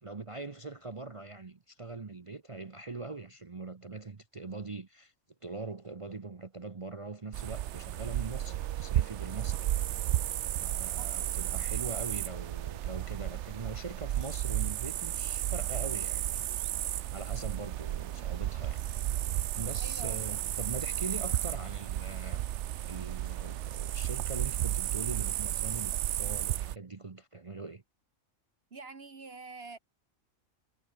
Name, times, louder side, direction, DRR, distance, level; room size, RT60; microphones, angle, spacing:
voice 1, 0.0-5.1 5.4-9.8 10.6-16.4 17.1-18.9 19.6-22.4 22.8-27.8, right 3 dB, 30° right, 0.8 m, -42 dB
sound 1, 7.3-26.8, right 13 dB, 65° right, 0.8 m, -33 dB
voice 2, 19.8-20.2 28.7-29.8, right 3 dB, 50° right, 1.9 m, -46 dB
omnidirectional pair, 1.4 m